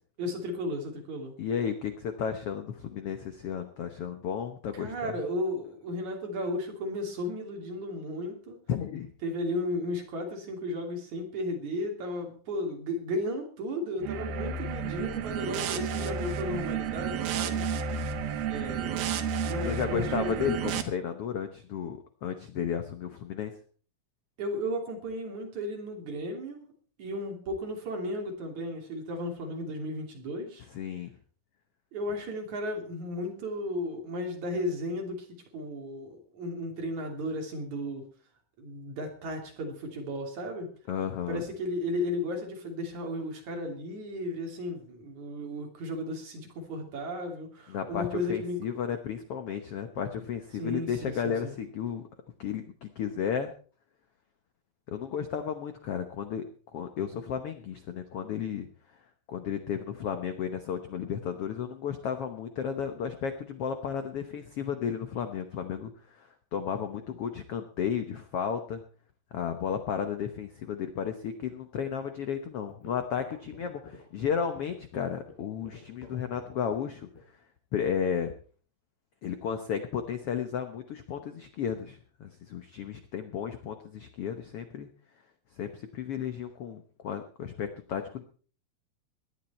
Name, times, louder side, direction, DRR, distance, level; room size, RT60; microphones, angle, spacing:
voice 1, 0.2-1.3 4.7-8.6 9.2-17.7 18.5-19.0 19.5-20.4 24.4-26.7 27.0-30.6 31.9-38.1 38.6-40.7 41.3-48.6 50.6-51.5, left 1 dB, 55° right, 2 dB, 4.2 m, -34 dB
voice 2, 1.4-5.2 8.7-9.1 19.6-23.5 30.7-31.1 40.9-41.4 47.7-52.0 52.4-53.5 54.9-56.5 56.7-58.7 59.3-68.8 69.3-77.1 77.7-78.3 79.2-84.9 85.5-88.2, left 7 dB, 75° left, 8 dB, 1.3 m, -33 dB
sound 1, 14.0-20.8, right 6 dB, 85° right, 3.2 m, -31 dB
sound 2, 72.7-77.3, left 4 dB, 90° left, 6.3 m, -48 dB
19.0 x 12.0 x 4.3 m, 0.42 s
omnidirectional pair, 4.2 m